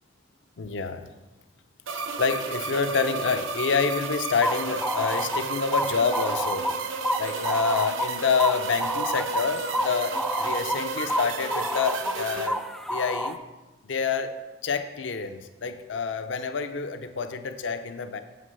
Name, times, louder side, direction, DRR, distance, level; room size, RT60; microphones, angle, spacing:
voice 1, 0.6-1.1 1.9-6.7 7.2-12.6 12.9-13.4 13.9-14.3 14.6-18.2, left 5 dB, 65° left, 9 dB, 0.5 m, -27 dB
sound 1, 1.9-12.5, right 5 dB, 80° right, 0.7 m, -33 dB
sound 2, 4.4-13.3, equal, ahead, 0.3 m, -30 dB
7.4 x 6.5 x 5.4 m, 1.1 s
head